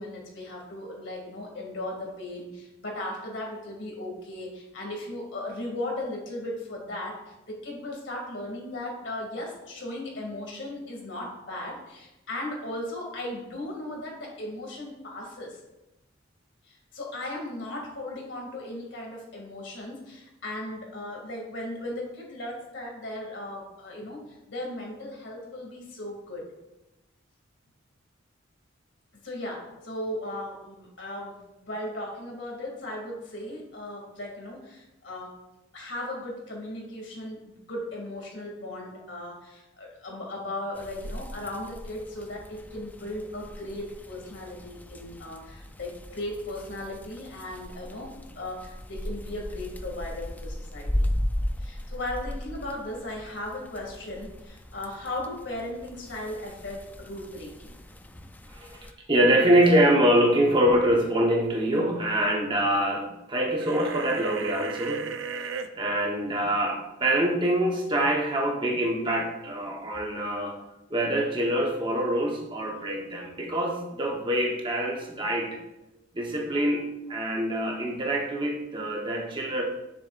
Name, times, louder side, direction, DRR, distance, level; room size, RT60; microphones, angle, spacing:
voice 1, 0.0-15.6 16.6-26.5 29.2-35.4 35.7-51.1 51.6-57.7, left 1 dB, 65° left, -1 dB, 2.3 m, -37 dB
sound 1, 40.7-58.9, left 1 dB, 10° left, 0.3 m, -37 dB
voice 2, 58.5-65.0 65.4-70.6 70.9-75.6 76.1-79.6, right 1 dB, 25° right, 0 dB, 1.0 m, -25 dB
sound 2, 63.6-65.7, right 5 dB, 75° right, 0.5 m, -34 dB
10.0 x 6.8 x 2.5 m, 0.97 s
head